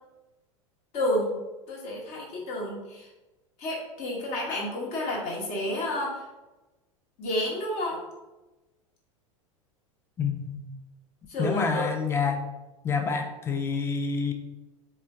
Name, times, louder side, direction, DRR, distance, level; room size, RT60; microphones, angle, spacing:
voice 1, 0.9-1.4 1.7-3.1 3.6-6.2 7.2-8.0 11.3-11.8, left 1 dB, 40° left, -2 dB, 1.1 m, -30 dB
voice 2, 10.2-10.6 11.4-12.4 12.8-14.3, left 5 dB, 15° left, 5 dB, 0.4 m, -27 dB
4.3 x 2.2 x 3.5 m, 1.1 s
figure-of-eight pair, 85°, 17 cm